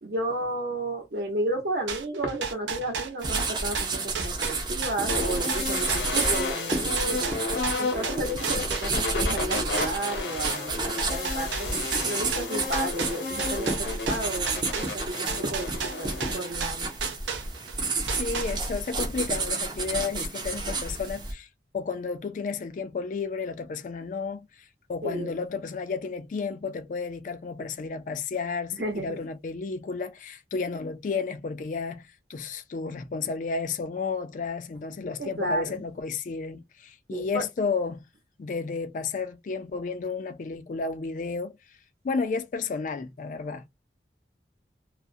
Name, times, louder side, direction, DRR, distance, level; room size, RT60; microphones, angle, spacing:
voice 1, 0.0-7.3 7.8-13.7 14.1-14.5 14.7-15.0 15.4-15.7 16.0-16.9 25.0-25.3 28.8-29.2 35.2-35.8 37.1-37.4, right 1 dB, 60° right, 0.9 m, -32 dB
sound 1, 1.9-9.2 9.5-17.8 18.1-18.9, right 5 dB, 80° right, 0.5 m, -34 dB
sound 2, 3.2-21.3, right 3 dB, 25° right, 0.4 m, -31 dB
sound 3, 5.1-16.4, left 3 dB, 75° left, 0.9 m, -33 dB
voice 2, 18.1-21.5 21.7-38.0 38.4-41.6 42.0-43.6, left 4 dB, 45° left, 0.3 m, -32 dB
2.3 x 2.0 x 2.6 m
head